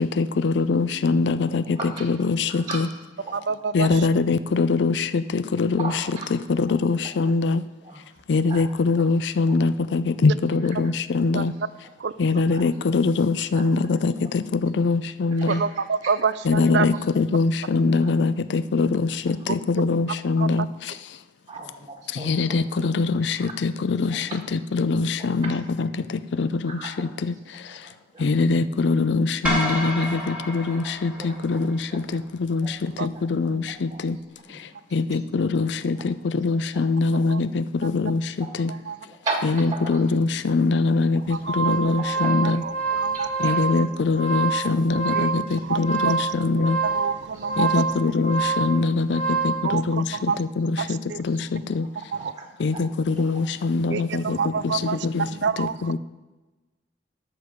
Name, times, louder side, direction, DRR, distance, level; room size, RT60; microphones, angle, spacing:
voice 1, 0.0-2.9 3.7-5.9 6.3-7.6 8.3-11.6 12.2-15.6 16.5-21.0 22.1-27.9 28.2-34.2 34.5-38.7 39.4-42.6 43.4-46.8 47.6-51.9 52.6-55.3 55.6-56.0, left 3 dB, 70° left, 14 dB, 0.4 m, -23 dB
voice 2, 1.7-2.1 2.5-3.9 5.8-6.3 6.7-6.8 7.8-8.0 8.5-9.1 9.5-9.6 12.3-12.6 13.5-14.3 15.4-16.1 16.9-17.0 18.0-18.1 19.4-19.5 19.9-20.0 20.9-21.0 21.5-22.9 23.4-23.5 24.1-25.6 26.6-27.1 27.4-28.3 28.6-28.8 30.3-30.5 30.8-32.2 32.6-32.7 33.1-34.0 34.4-34.6 36.0-36.1 36.5-36.9 38.4-40.2 41.1-41.2 42.0-42.5 42.8-43.6 44.6-44.7 47.3-47.7 50.8-50.9 51.2-51.4 51.7-53.4, right 3 dB, 20° right, -1 dB, 1.4 m, -38 dB
voice 3, 3.5-4.1 11.3-11.4 12.0-12.1 15.5-16.9 20.4-20.5 33.0-33.1 37.3-37.4 37.8-37.9 38.7-39.0 41.3-41.7 42.6-43.3 45.1-45.3 45.6-46.2 46.8-47.8 49.6-50.4 50.8-51.2 52.1-52.3 53.9-56.0, right 5 dB, 70° right, 15 dB, 0.5 m, -28 dB
sound 1, 29.4-31.8, equal, 5° right, 1.6 m, -29 dB
sound 2, 41.2-49.6, right 4 dB, 50° left, 3.2 m, -27 dB
12.5 x 6.7 x 5.0 m, 1.1 s
head